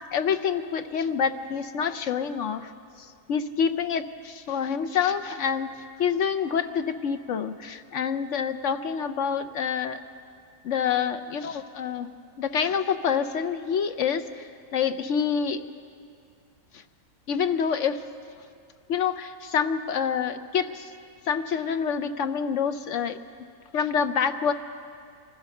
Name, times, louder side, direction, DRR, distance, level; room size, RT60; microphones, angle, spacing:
voice 1, 0.1-2.7 3.0-5.7 6.0-10.0 10.6-12.1 12.4-15.6 17.3-18.0 18.9-20.9 21.3-23.2 23.7-24.5, left 7 dB, 60° left, 9 dB, 0.9 m, -27 dB
25.5 x 15.5 x 6.5 m, 2.4 s
omnidirectional pair, 1.6 m